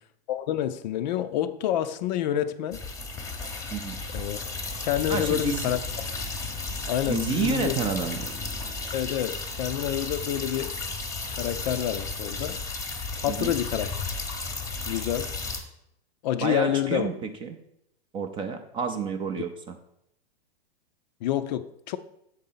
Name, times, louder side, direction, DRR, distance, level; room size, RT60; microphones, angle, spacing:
voice 1, 0.3-2.8 4.1-4.4 4.8-5.8 6.9-7.8 8.9-10.8 11.4-12.6 13.2-13.9 14.9-15.3 16.2-17.1 21.2-22.0, left 11 dB, 45° left, 0.4 m, -28 dB
sound 1, 2.7-15.6, left 3 dB, 10° left, 0.9 m, -34 dB
voice 2, 5.1-5.7 7.1-8.3 13.3-13.5 16.4-17.6 18.1-19.7, right 5 dB, 15° right, 0.4 m, -30 dB
7.6 x 4.0 x 5.6 m
hypercardioid pair, 140°, 30 cm